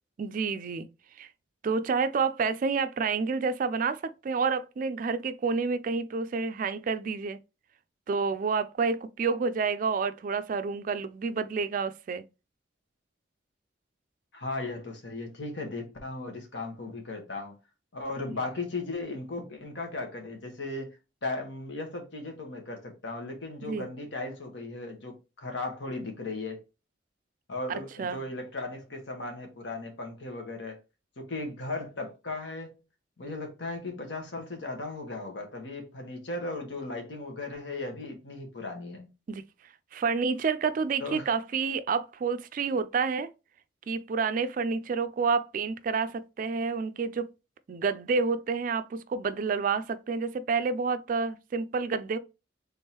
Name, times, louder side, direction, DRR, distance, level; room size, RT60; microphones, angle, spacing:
voice 1, 0.2-0.9 1.2-1.3 1.6-7.4 8.1-12.2 23.6-23.9 27.7-28.2 39.3-39.4 39.9-43.3 43.9-47.3 47.7-52.2, right 5 dB, 45° right, 0.3 m, -29 dB
voice 2, 14.3-17.6 17.9-21.0 21.2-26.6 27.5-30.8 31.2-32.8 33.2-39.1 41.0-41.3, left 2 dB, 70° left, 1.2 m, -36 dB
3.6 x 3.5 x 2.8 m
head